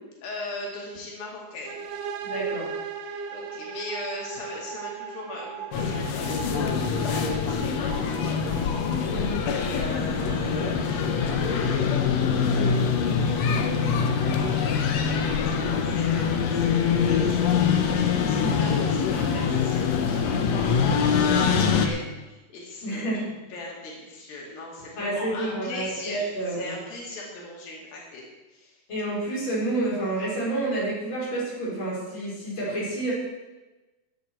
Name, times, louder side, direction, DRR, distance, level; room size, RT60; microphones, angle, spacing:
voice 1, 0.2-1.9 2.9-28.2 28.5-28.8, left 1 dB, 90° left, -2 dB, 4.2 m, -40 dB
sound 1, 1.7-9.3, right 6 dB, 75° right, 2.4 m, -37 dB
voice 2, 2.2-2.7 9.1-9.4 18.4-18.7 22.8-23.2 25.0-26.8 28.9-33.1, right 2 dB, 35° left, -6 dB, 5.4 m, -29 dB
sound 2, 5.7-21.9, left 6 dB, 65° left, 1.8 m, -24 dB
15.0 x 10.0 x 4.5 m, 1.1 s
omnidirectional pair, 4.0 m